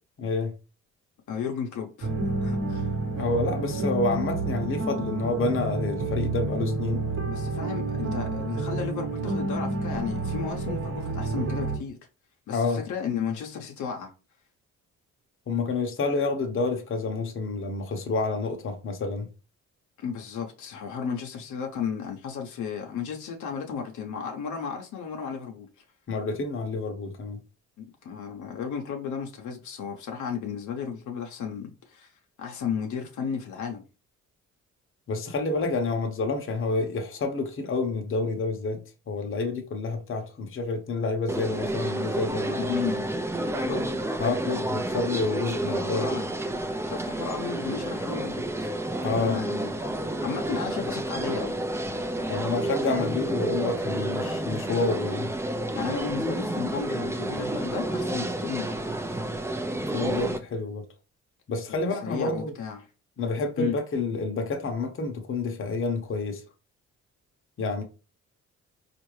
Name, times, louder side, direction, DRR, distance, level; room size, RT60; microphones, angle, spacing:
voice 1, 0.2-0.5 3.2-7.1 12.5-12.8 15.5-19.3 26.1-27.4 35.1-42.7 44.2-46.1 49.0-49.5 52.3-55.3 59.9-60.9 61.5-62.5 63.2-66.4 67.6-67.8, left 3 dB, 45° left, 0.9 m, -29 dB
voice 2, 1.3-2.1 2.3-2.9 7.2-12.0 12.5-14.1 20.0-25.7 27.8-32.1 32.4-33.8 42.6-43.1 43.6-44.1 45.6-46.3 46.9-48.7 49.2-51.6 55.7-58.8 61.7-62.8 63.6-63.7, left 7 dB, 75° left, 0.9 m, -34 dB
sound 1, 2.0-11.8, right 3 dB, 45° right, 1.0 m, -29 dB
sound 2, 41.3-60.4, right 1 dB, 10° right, 0.5 m, -30 dB
4.3 x 2.5 x 3.2 m
cardioid pair, 90°, 30 cm